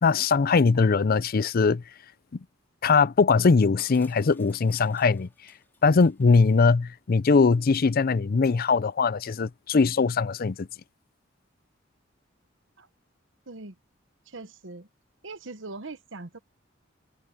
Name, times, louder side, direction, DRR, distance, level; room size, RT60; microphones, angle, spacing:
voice 1, 0.0-1.8 2.8-5.3 5.8-10.7, left 4 dB, 50° left, 0.5 m, -21 dB
Crushing, 3.8-6.7, left 2 dB, 10° left, 3.4 m, -56 dB
voice 2, 13.5-13.8 14.2-14.9 15.2-16.4, right 3 dB, 70° right, 1.1 m, -41 dB
head